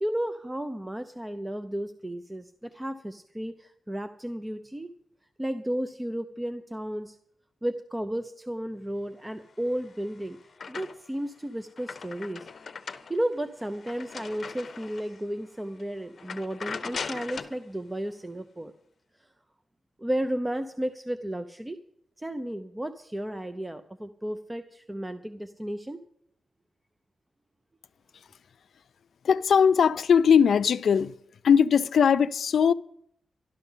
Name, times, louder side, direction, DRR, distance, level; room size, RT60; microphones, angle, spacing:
voice 1, 0.0-4.9 5.4-7.2 7.6-10.4 10.7-12.5 13.1-18.7 20.0-21.8 22.2-26.0, right 1 dB, 10° right, 0.6 m, -33 dB
sound 1, 9.7-11.2 11.6-15.2 15.7-15.8 16.2-17.6, left 5 dB, 50° left, 0.7 m, -39 dB
voice 2, 29.2-31.1 31.4-32.7, left 7 dB, 75° left, 0.4 m, -20 dB
12.5 x 12.0 x 5.6 m
wide cardioid pair, 115°, 0 cm